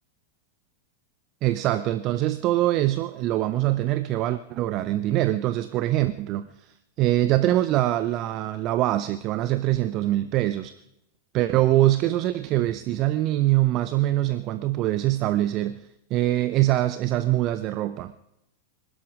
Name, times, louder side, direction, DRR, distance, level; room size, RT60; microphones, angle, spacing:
voice 1, 1.4-10.7 11.3-18.1, right 15 dB, 40° right, 13 dB, 0.6 m, -24 dB
25.0 x 11.5 x 5.0 m, 0.85 s
figure-of-eight pair, 90°, 0 cm